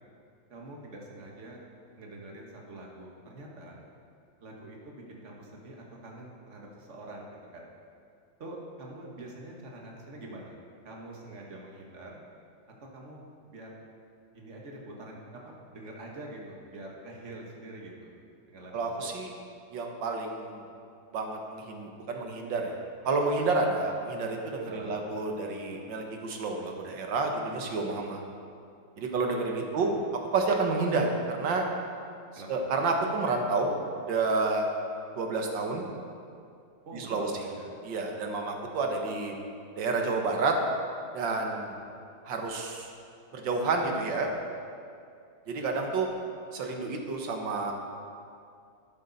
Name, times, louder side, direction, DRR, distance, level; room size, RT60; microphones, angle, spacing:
voice 1, 0.5-1.6 2.0-3.8 4.4-7.7 8.4-10.6 10.8-12.2 12.9-13.7 14.3-18.1 18.5-19.1 24.7-25.0 29.4-30.1 32.4-32.5 36.9-37.7, right 1 dB, 40° right, -2 dB, 1.8 m, -45 dB
voice 2, 18.7-19.3 19.7-20.6 21.1-22.8 23.0-28.2 29.0-29.9 30.3-31.7 32.5-33.7 34.1-34.7 35.2-35.8 36.9-37.3 37.8-39.3 39.8-40.6 41.1-41.7 42.3-42.9 43.3-44.3 45.5-46.1 46.5-47.7, right 3 dB, 70° right, 2 dB, 2.0 m, -29 dB
12.0 x 11.5 x 4.1 m, 2.4 s
omnidirectional pair, 2.1 m